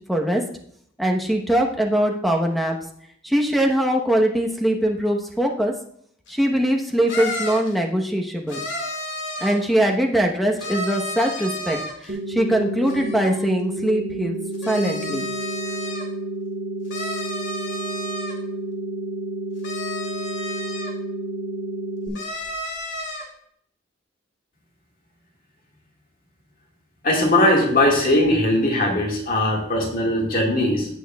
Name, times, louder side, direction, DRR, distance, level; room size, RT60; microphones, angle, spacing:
voice 1, 0.1-0.4 1.0-2.8 3.2-5.7 6.3-8.6 9.4-14.4 14.7-15.2 27.7-27.8, right 1 dB, ahead, 1 dB, 1.0 m, -22 dB
sound 1, 6.3-6.4 7.1-7.7 8.5-9.7 10.6-12.1 12.8-13.5 14.5-16.0 16.9-18.4 19.6-20.9 22.1-23.2, left 1 dB, 75° left, 2.1 m, -32 dB
sound 2, 12.1-22.1, right 2 dB, 80° right, 3.6 m, -30 dB
voice 2, 27.0-30.9, left 1 dB, 50° left, -1 dB, 1.8 m, -19 dB
16.0 x 6.3 x 2.3 m, 0.67 s
head